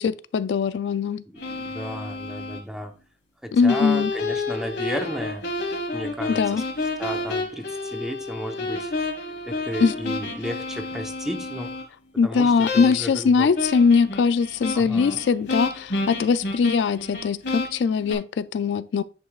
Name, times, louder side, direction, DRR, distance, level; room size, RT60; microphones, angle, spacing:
voice 1, 0.0-1.2 3.5-4.1 6.3-6.6 9.8-9.9 12.2-19.0, left 5 dB, 85° left, 0.3 m, -21 dB
voice 2, 1.3-2.9 3.4-5.5 5.9-6.6 7.0-8.9 9.4-11.8 12.2-13.5 14.7-15.2, equal, 5° right, 0.9 m, -33 dB
sound 1, 1.4-2.6 3.7-11.8 12.6-13.2 13.5-18.1, left 2 dB, 70° left, 1.6 m, -30 dB
9.8 x 5.4 x 2.4 m
head